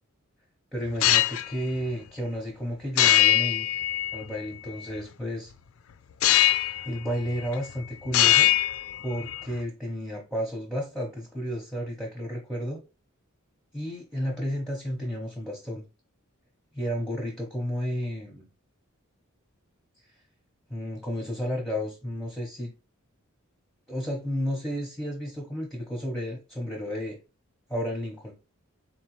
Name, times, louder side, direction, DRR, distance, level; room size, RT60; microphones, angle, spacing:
voice 1, 0.7-3.7 4.1-5.5 6.8-8.5 9.0-12.8 13.7-15.8 16.7-18.5 20.7-22.7 23.9-27.2 27.7-28.3, equal, ahead, -1 dB, 0.7 m, -32 dB
sound 1, 0.9-1.5 3.0-4.4 6.2-6.9 7.2-7.8 8.1-9.4, left 13 dB, 75° left, 0.4 m, -22 dB
4.1 x 2.9 x 3.0 m, 0.30 s
head